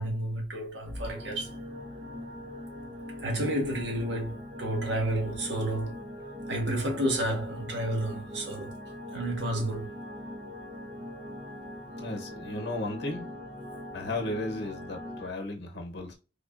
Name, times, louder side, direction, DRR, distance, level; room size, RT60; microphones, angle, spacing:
voice 1, 0.0-1.5 3.2-6.0 6.5-8.8 9.1-9.9, right 1 dB, 70° right, 1.3 m, -31 dB
sound 1, 0.8-15.3, left 1 dB, 40° right, 0.8 m, -41 dB
voice 2, 12.0-13.3 13.9-16.1, left 2 dB, 60° left, 0.9 m, -35 dB
3.6 x 3.4 x 2.4 m
head